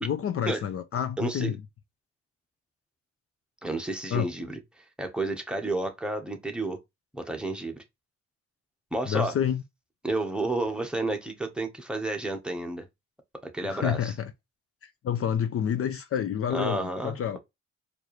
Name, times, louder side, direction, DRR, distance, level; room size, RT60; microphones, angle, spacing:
voice 1, 0.0-1.6 4.1-4.3 9.1-9.6 13.6-14.3 14.8-17.4, left 9 dB, 50° left, 0.5 m, -28 dB
voice 2, 1.2-1.5 3.6-4.6 5.0-6.8 7.1-7.8 8.9-9.3 10.0-12.9 13.5-14.1 16.5-17.4, right 2 dB, 5° right, 1.0 m, -31 dB
4.5 x 2.6 x 3.1 m
cardioid pair, 90°, 30 cm